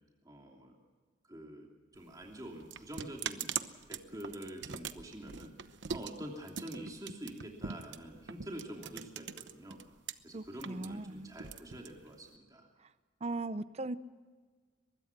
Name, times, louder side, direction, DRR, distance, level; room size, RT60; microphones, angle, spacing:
voice 1, 0.2-0.8 1.3-1.7 1.9-3.5 3.9-5.5 5.9-9.8 10.2-12.7, right 1 dB, 20° right, 0 dB, 2.9 m, -46 dB
sound 1, 1.9-10.1 10.4-12.4, right 7 dB, 70° right, 0.9 m, -42 dB
voice 2, 10.3-11.3 13.2-14.0, right 2 dB, 35° right, 14 dB, 0.6 m, -38 dB
23.5 x 21.5 x 6.0 m, 1.5 s
head